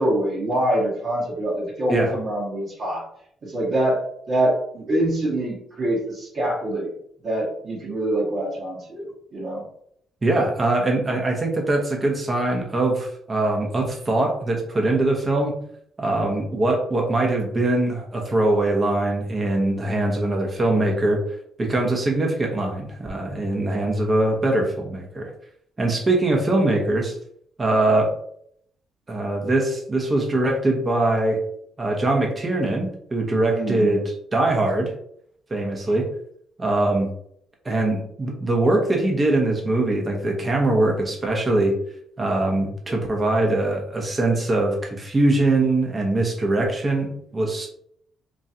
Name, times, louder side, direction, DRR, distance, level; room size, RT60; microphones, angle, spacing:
voice 1, 0.0-3.0 3.4-4.0 4.3-6.9 7.2-9.6 33.5-34.0 35.9-36.0, right 1 dB, 50° right, -6 dB, 1.3 m, -25 dB
voice 2, 10.2-15.5 16.0-21.2 21.6-25.3 25.8-27.1 27.6-28.1 29.1-31.4 31.8-34.0 34.3-34.9 35.5-36.1 36.6-37.1 37.6-41.7 42.2-47.7, right 2 dB, 30° right, 0 dB, 1.1 m, -22 dB
3.0 x 2.8 x 3.7 m, 0.67 s
cardioid pair, 90°, 0 cm